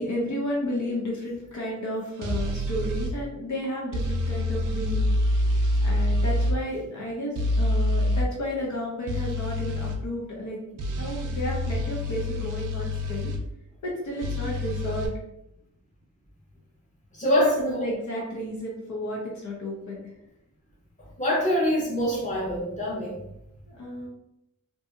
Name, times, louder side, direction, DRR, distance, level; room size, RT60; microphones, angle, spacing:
voice 1, 0.0-13.3 13.8-15.1 17.2-20.1 23.7-24.1, equal, 70° left, -3 dB, 0.7 m, -32 dB
sound 1, 2.2-3.1 3.9-6.6 7.4-8.3 9.1-10.0 10.8-13.4 14.2-15.1, left 1 dB, 80° right, 0.5 m, -26 dB
voice 2, 17.1-17.8 21.2-23.2, equal, 25° left, -5 dB, 1.0 m, -25 dB
2.7 x 2.6 x 2.3 m, 0.82 s
wide cardioid pair, 150°, 31 cm